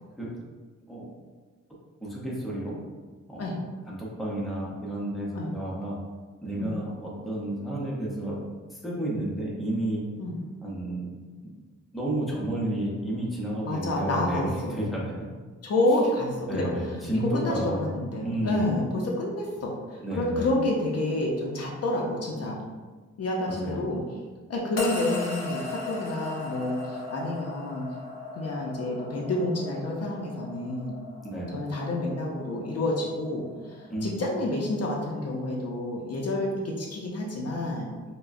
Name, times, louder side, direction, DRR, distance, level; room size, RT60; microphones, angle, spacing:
voice 1, 2.0-2.8 3.3-3.5 3.9-6.0 6.4-8.4 8.7-10.0 10.6-11.1 11.9-15.1 16.5-18.6 20.0-20.5 23.5-23.8 31.2-31.6 33.9-34.2, right 1 dB, ahead, -5 dB, 0.6 m, -31 dB
voice 2, 13.6-14.8 15.6-16.7 17.1-22.6 23.2-24.0 24.5-27.9 28.3-31.0 31.5-37.9, left 1 dB, 50° left, -2 dB, 0.5 m, -29 dB
sound 1, 24.8-35.1, left 3 dB, 90° left, 1.0 m, -39 dB
4.7 x 2.1 x 2.5 m, 1.4 s
wide cardioid pair, 165°, 32 cm